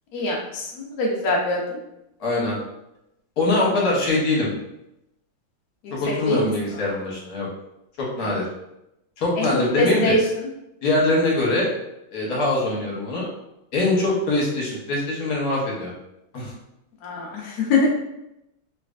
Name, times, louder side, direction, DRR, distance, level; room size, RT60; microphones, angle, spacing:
voice 1, 0.1-1.8 6.3-6.4 6.7-6.9 9.4-9.5 9.7-10.2 17.0-17.9, left 2 dB, 80° left, -2 dB, 0.8 m, -23 dB
voice 2, 2.2-2.6 3.4-4.5 5.9-7.5 8.0-8.4 9.2-10.1 10.8-11.7 12.1-13.3 13.7-15.9 16.3-16.5, left 2 dB, 55° left, -3 dB, 1.3 m, -23 dB
3.2 x 3.2 x 2.4 m, 0.86 s
omnidirectional pair, 2.3 m